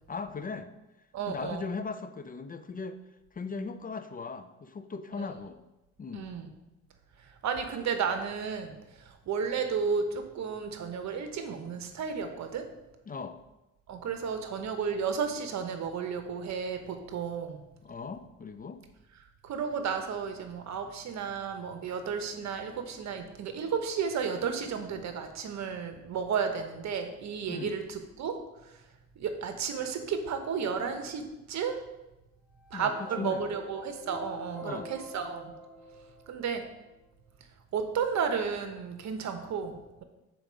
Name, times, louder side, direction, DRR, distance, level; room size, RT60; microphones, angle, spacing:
voice 1, 0.1-0.7 1.3-3.0 3.3-5.6 6.0-6.3 13.1-13.4 17.8-18.8 27.5-27.8 32.7-33.5 34.6-34.9, left 4 dB, 30° left, 10 dB, 0.5 m, -38 dB
voice 2, 1.1-1.6 5.2-5.3 6.1-6.5 7.4-8.7 9.0-12.7 13.9-17.6 19.4-28.3 29.2-31.8 32.7-35.5 36.3-36.6 37.7-40.0, right 6 dB, 65° right, 7 dB, 1.0 m, -33 dB
sound 1, 32.6-36.9, equal, 5° right, 1.8 m, -47 dB
5.1 x 4.6 x 6.2 m, 0.98 s
cardioid pair, 90°, 30 cm